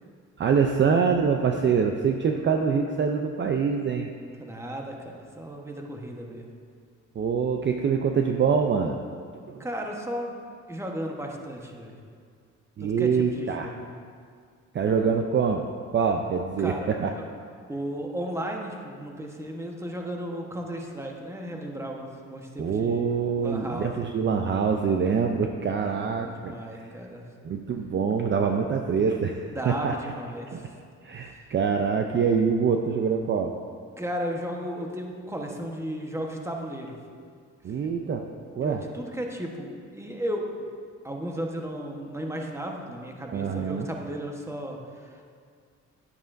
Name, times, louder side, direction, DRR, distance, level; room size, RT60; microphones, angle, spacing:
voice 1, 0.4-4.1 7.2-9.0 9.5-9.6 12.8-13.7 14.7-15.6 15.9-17.1 22.6-26.9 27.4-30.0 30.5-30.6 31.0-33.5 37.6-38.2 38.6-38.8 43.3-43.9, right 6 dB, 40° right, 4 dB, 0.5 m, -25 dB
voice 2, 4.4-6.5 9.4-10.3 10.7-11.9 12.8-13.9 16.6-16.9 17.2-17.3 17.7-23.1 23.4-24.1 25.8-27.2 29.5-30.6 34.0-37.0 38.1-38.2 38.6-40.4 41.0-45.2, equal, 10° right, 1 dB, 1.1 m, -35 dB
9.9 x 9.0 x 2.6 m, 2.1 s
cardioid pair, 90°, 30 cm